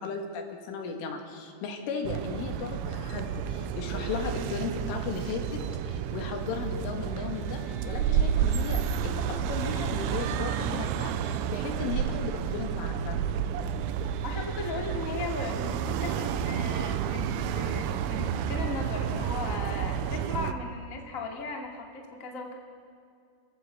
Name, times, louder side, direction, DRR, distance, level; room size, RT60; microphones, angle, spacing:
voice 1, 0.0-13.2, left 5 dB, 75° left, 3 dB, 4.7 m, -36 dB
sound 1, 2.0-20.5, right 9 dB, 80° right, 2.9 m, -31 dB
sound 2, 3.0-18.5, right 2 dB, 55° right, 6.0 m, -43 dB
voice 2, 14.2-22.5, left 4 dB, 40° left, 2 dB, 1.2 m, -37 dB
29.0 x 15.0 x 8.4 m, 2.4 s
omnidirectional pair, 5.8 m